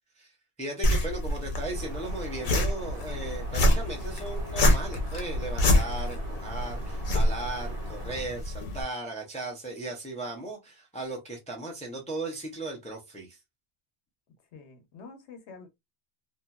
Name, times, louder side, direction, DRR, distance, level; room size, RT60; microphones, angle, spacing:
voice 1, 0.6-13.4, right 2 dB, 10° left, 0.5 m, -37 dB
sound 1, 0.8-8.8, left 1 dB, 50° left, 0.8 m, -27 dB
sound 2, 1.7-8.2, right 2 dB, 60° right, 1.0 m, -46 dB
voice 2, 14.5-15.7, left 4 dB, 90° left, 1.1 m, -47 dB
2.8 x 2.6 x 2.3 m
omnidirectional pair, 1.1 m